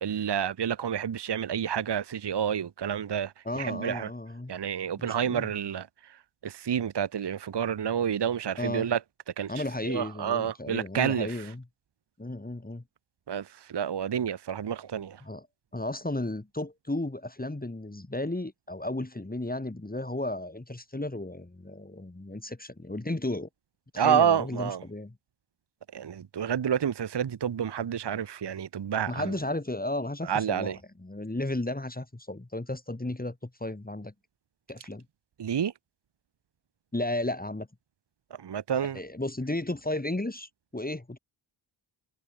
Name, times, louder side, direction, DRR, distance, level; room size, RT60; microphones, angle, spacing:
voice 1, 0.0-4.1 4.5-9.0 9.4-9.5 9.8-11.5 13.3-15.2 24.0-24.8 25.9-29.3 30.2-30.8 35.4-35.7 38.4-39.0, right 8 dB, 55° right, 0.8 m, -29 dB
voice 2, 3.4-4.5 5.0-5.5 8.6-8.9 9.5-11.6 12.2-12.8 15.2-15.5 15.7-23.5 23.9-25.1 29.1-34.1 34.7-35.0 36.9-37.7 38.9-41.2, left 1 dB, 20° left, 2.5 m, -34 dB
wide cardioid pair, 90°, 49 cm